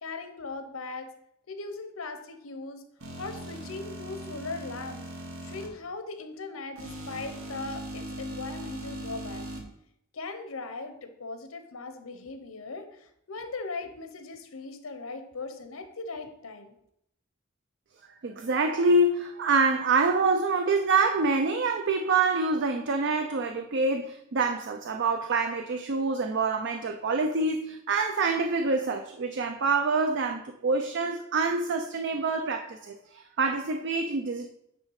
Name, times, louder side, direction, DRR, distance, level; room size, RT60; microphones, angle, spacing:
voice 1, 0.0-1.1 1.5-2.8 3.2-5.0 5.4-9.5 10.1-16.7, left 3 dB, 90° left, 8 dB, 0.9 m, -39 dB
sound 1, 3.0-5.7 6.8-9.6, right 1 dB, 85° right, 1.5 m, -39 dB
voice 2, 18.2-34.5, right 3 dB, 60° right, 5 dB, 0.5 m, -26 dB
9.2 x 3.2 x 4.8 m, 0.75 s
head